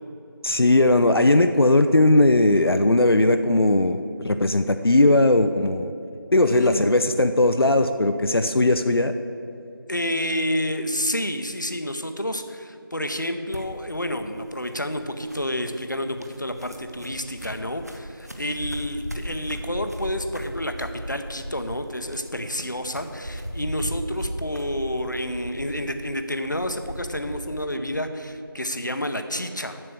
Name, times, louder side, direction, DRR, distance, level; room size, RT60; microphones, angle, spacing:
voice 1, 0.4-5.9 6.3-9.1, left 2 dB, 85° left, 8 dB, 0.5 m, -18 dB
voice 2, 6.4-7.0 9.9-29.8, left 1 dB, 55° left, 7 dB, 0.8 m, -29 dB
sound 1, 13.5-27.5, equal, 45° right, 0.9 m, -37 dB
7.6 x 6.8 x 7.7 m, 2.8 s
figure-of-eight pair, 180°, 12 cm